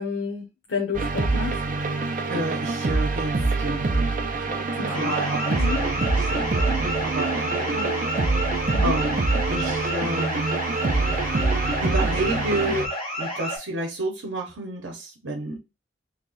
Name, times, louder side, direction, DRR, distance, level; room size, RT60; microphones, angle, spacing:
voice 1, 0.0-1.6 4.8-5.8 7.7-7.9 8.7-9.0, left 6 dB, 85° left, 0.7 m, -31 dB
sound 1, 0.9-12.9, right 3 dB, 45° right, 0.5 m, -25 dB
voice 2, 2.3-3.9 4.5-7.8 8.8-10.6 11.8-12.9 13.2-15.6, right 2 dB, 85° right, 0.8 m, -30 dB
sound 2, 4.9-13.6, equal, 35° left, 2.1 m, -31 dB
3.2 x 2.3 x 3.8 m
head